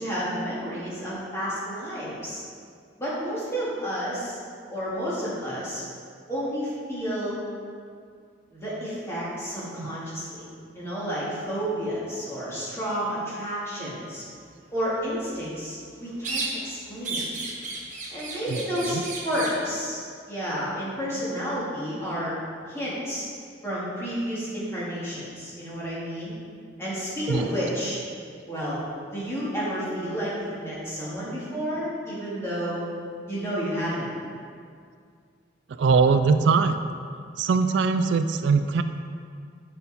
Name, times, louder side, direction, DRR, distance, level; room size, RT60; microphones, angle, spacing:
voice 1, 0.0-2.4 3.0-4.4 4.7-5.8 6.3-7.4 8.5-10.5 10.7-14.2 14.7-17.2 18.1-20.0 20.3-22.4 22.7-23.2 23.6-26.4 26.8-28.0 28.5-28.8 29.1-32.9 33.3-34.1, equal, 15° left, -9 dB, 2.0 m, -31 dB
sound 1, 16.2-16.8 17.0-19.6, right 3 dB, 40° right, 1.1 m, -33 dB
voice 2, 18.5-19.0 27.3-27.5 35.7-36.8 37.4-38.8, right 4 dB, 75° right, 9 dB, 0.3 m, -22 dB
8.0 x 5.3 x 4.1 m, 2.2 s
head